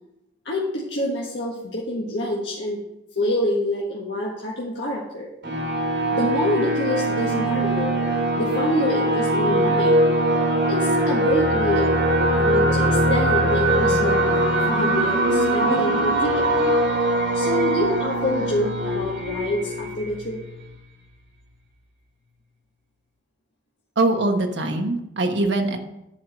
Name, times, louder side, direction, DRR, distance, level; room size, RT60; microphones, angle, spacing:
voice 1, 0.4-2.8 3.1-5.3 6.1-7.9 8.3-10.0 10.7-11.9 12.4-16.5 17.3-20.4, left 1 dB, 70° left, -4 dB, 1.5 m, -26 dB
sound 1, 5.4-20.8, right 1 dB, 85° right, 2.7 m, -21 dB
voice 2, 24.0-25.8, right 2 dB, 70° right, 4 dB, 1.2 m, -22 dB
10.0 x 4.8 x 6.6 m, 0.86 s
head